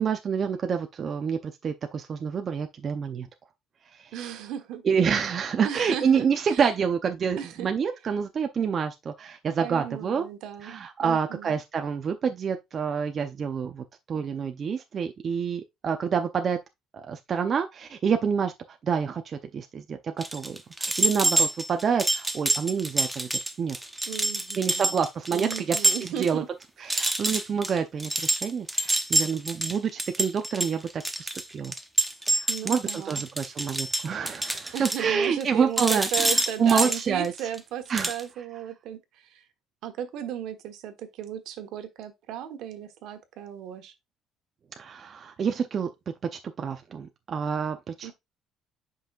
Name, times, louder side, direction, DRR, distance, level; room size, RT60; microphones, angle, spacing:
voice 1, 0.0-3.3 3.9-4.1 4.8-10.2 10.6-16.6 16.9-18.5 18.8-23.8 24.6-26.4 26.8-31.3 31.5-31.7 32.3-37.3 37.9-38.1 44.8-48.1, right 6 dB, 40° right, 0.6 m, -28 dB
voice 2, 4.1-4.8 5.6-6.7 7.4-7.7 9.6-11.6 24.0-24.9 25.3-26.5 27.0-27.1 32.5-33.2 34.7-39.4 39.8-43.9 48.0-48.1, right 10 dB, 75° right, 1.3 m, -36 dB
sound 1, 20.2-26.3 26.6-26.7 26.9-35.5 35.8-37.6 37.9-38.2, right 1 dB, 5° right, 0.7 m, -27 dB
7.9 x 5.5 x 2.4 m
cardioid pair, 130°, 0 cm